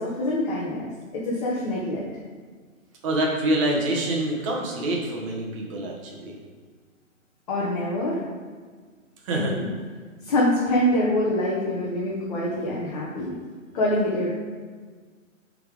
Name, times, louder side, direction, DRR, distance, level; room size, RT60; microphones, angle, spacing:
voice 1, 0.0-2.0 7.5-8.2 9.3-9.6 10.2-13.4 13.7-14.3, left 1 dB, 30° left, -5 dB, 1.2 m, -25 dB
voice 2, 3.0-6.3 9.2-9.5, right 1 dB, 25° right, -1 dB, 1.2 m, -26 dB
8.5 x 3.8 x 4.9 m, 1.5 s
hypercardioid pair, 160°, 41 cm